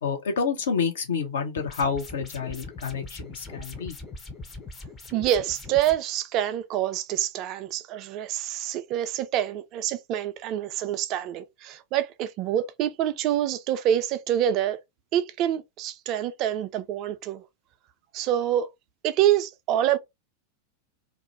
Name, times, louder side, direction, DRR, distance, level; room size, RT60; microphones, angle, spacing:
voice 1, 0.0-3.9, left 5 dB, 65° left, 0.6 m, -28 dB
sound 1, 1.6-6.0, left 3 dB, 20° left, 0.6 m, -41 dB
voice 2, 5.1-14.8 15.1-17.4 18.1-18.7 19.0-20.0, right 11 dB, 40° right, 0.3 m, -26 dB
2.3 x 2.0 x 3.0 m
figure-of-eight pair, 90°, 0 cm